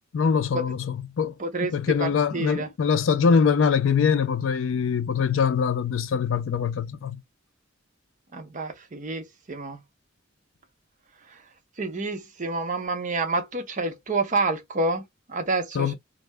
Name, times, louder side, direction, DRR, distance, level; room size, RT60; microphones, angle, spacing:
voice 1, 0.1-7.2 15.7-16.0, left 6 dB, 70° left, 0.4 m, -23 dB
voice 2, 1.4-2.7 8.3-9.8 11.8-16.0, right 3 dB, 40° right, 0.6 m, -28 dB
2.6 x 2.0 x 3.2 m
head